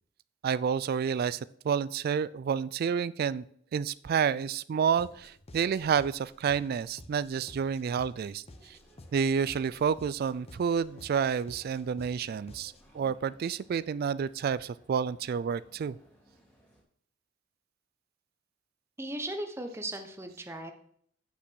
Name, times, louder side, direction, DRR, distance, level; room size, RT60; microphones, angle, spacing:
voice 1, 0.4-3.4 3.7-8.8 9.1-16.0, right 7 dB, 50° right, 18 dB, 0.3 m, -29 dB
sound 1, 5.0-13.0, left 1 dB, 30° left, 0.7 m, -53 dB
sound 2, 8.5-16.8, equal, 5° left, 3.1 m, -61 dB
voice 2, 19.0-20.7, right 1 dB, 15° right, 6 dB, 1.0 m, -37 dB
8.1 x 5.9 x 6.3 m, 0.63 s
head